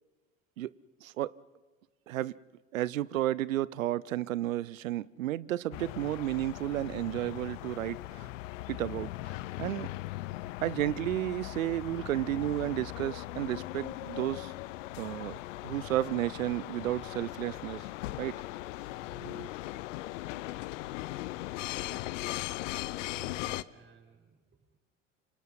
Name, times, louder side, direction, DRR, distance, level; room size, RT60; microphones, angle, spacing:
voice 1, 2.7-8.3 8.7-9.9 10.6-14.5 15.0-15.4 15.6-17.9 18.2-18.3 19.2-19.5, right 14 dB, 85° right, 21 dB, 0.7 m, -32 dB
sound 1, 5.7-23.6, left 17 dB, 70° left, 0.7 m, -39 dB
voice 2, 23.0-24.8, right 4 dB, 30° right, 0 dB, 6.5 m, -55 dB
26.5 x 26.0 x 5.8 m, 1.2 s
hypercardioid pair, 75°, 39 cm